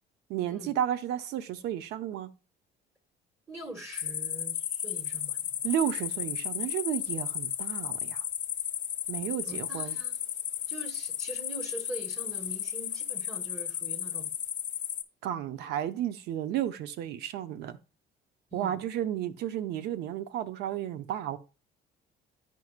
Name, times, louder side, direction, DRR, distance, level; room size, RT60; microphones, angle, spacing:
voice 1, 0.3-2.3 5.6-8.2 9.1-10.0 15.2-17.8 18.5-21.4, right 11 dB, 80° right, 0.6 m, -32 dB
voice 2, 3.5-5.7 9.5-10.2 10.7-14.3 15.4-15.7 18.5-18.8, right 1 dB, 15° right, 1.4 m, -43 dB
sound 1, 3.9-15.0, left 10 dB, 50° left, 0.8 m, -34 dB
10.5 x 4.6 x 2.4 m
cardioid pair, 110°, 17 cm